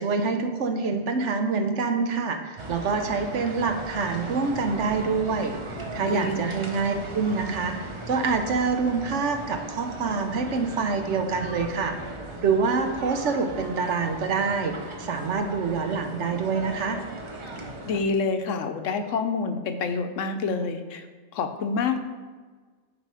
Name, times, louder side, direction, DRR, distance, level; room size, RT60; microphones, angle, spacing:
voice 1, 0.0-11.9 12.4-17.0, right 4 dB, 65° right, 6 dB, 1.0 m, -26 dB
sound 1, 2.6-18.0, right 1 dB, 25° right, 0.8 m, -38 dB
voice 2, 6.0-6.5 17.9-21.0 21.3-22.0, left 4 dB, 70° left, 8 dB, 1.0 m, -27 dB
9.9 x 4.3 x 4.8 m, 1.4 s
omnidirectional pair, 1.4 m